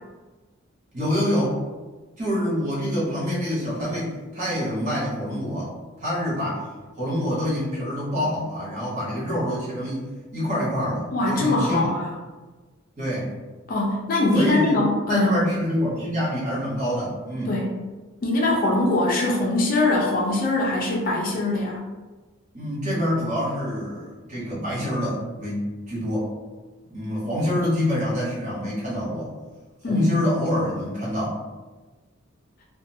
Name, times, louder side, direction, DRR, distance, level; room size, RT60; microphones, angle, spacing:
voice 1, 0.9-1.6 2.2-5.7 6.0-6.6 7.0-11.9 13.0-13.3 14.3-14.8 15.1-17.6 22.5-25.6 25.9-26.3 26.9-29.3 29.9-31.4, equal, 35° right, -8 dB, 1.0 m, -26 dB
voice 2, 11.1-12.1 13.7-15.4 17.5-17.7 18.2-21.8 29.8-30.1, left 2 dB, 45° left, -2 dB, 0.4 m, -22 dB
2.4 x 2.3 x 2.6 m, 1.3 s
head